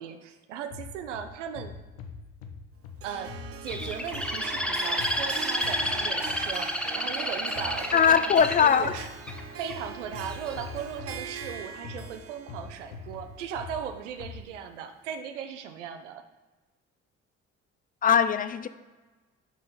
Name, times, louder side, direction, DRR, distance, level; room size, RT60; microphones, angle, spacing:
voice 1, 0.0-1.8 3.0-3.3 3.6-9.1 9.6-16.2, right 8 dB, 75° right, 0.7 m, -38 dB
sound 1, 0.7-6.8 7.6-14.4, left 5 dB, 70° left, 0.9 m, -44 dB
Harp, 3.0-14.2, right 7 dB, 40° right, 0.7 m, -42 dB
Bird, 3.7-9.7 10.3-10.7, equal, 5° left, 0.7 m, -30 dB
voice 2, 7.9-9.0 18.0-18.7, left 7 dB, 25° left, 0.4 m, -21 dB
9.5 x 5.6 x 4.0 m
figure-of-eight pair, 50°, 36 cm